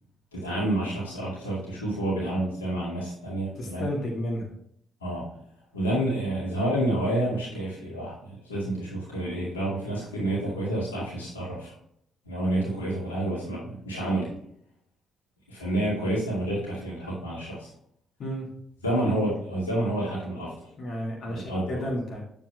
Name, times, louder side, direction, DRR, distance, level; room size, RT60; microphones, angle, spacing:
voice 1, 0.3-3.9 5.0-5.3 5.7-11.7 12.3-14.3 15.5-17.7 18.8-20.7 21.4-21.8, right 1 dB, 80° left, -7 dB, 2.2 m, -29 dB
voice 2, 3.6-4.5 7.2-7.4 18.2-18.5 20.8-22.2, equal, 50° left, -3 dB, 2.0 m, -32 dB
8.4 x 7.5 x 2.3 m, 0.70 s
figure-of-eight pair, 45°, 0 cm